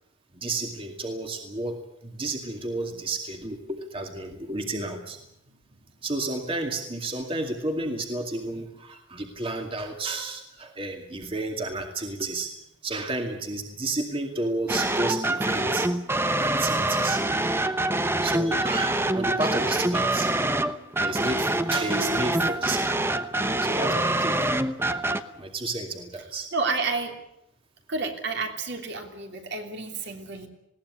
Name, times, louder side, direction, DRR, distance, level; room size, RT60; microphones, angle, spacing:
voice 1, 0.3-5.2 6.0-12.5 12.8-15.9 16.3-17.7 18.2-20.3 20.9-23.1 23.6-24.4 25.4-26.5, right 2 dB, 25° right, 3 dB, 2.4 m, -31 dB
sound 1, 14.7-25.2, right 1 dB, 10° right, 1.0 m, -25 dB
voice 2, 26.5-27.1 27.9-30.5, right 4 dB, 55° right, 3 dB, 3.3 m, -30 dB
20.5 x 17.5 x 9.7 m, 0.82 s
head